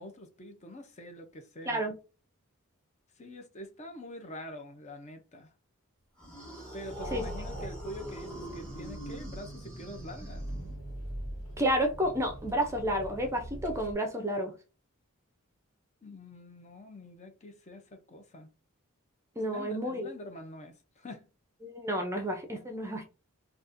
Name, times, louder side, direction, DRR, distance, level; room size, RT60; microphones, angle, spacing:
voice 1, 0.0-1.8 3.2-5.5 6.7-10.5 16.0-18.5 19.5-21.3, left 1 dB, 35° left, 0.6 m, -46 dB
sound 1, 6.2-11.0, right 1 dB, 5° left, 1.1 m, -43 dB
Engine, 6.8-13.9, right 1 dB, 85° left, 1.2 m, -42 dB
voice 2, 11.6-14.5 19.4-20.1 21.6-23.0, equal, 15° right, 0.5 m, -30 dB
4.0 x 2.4 x 2.5 m
head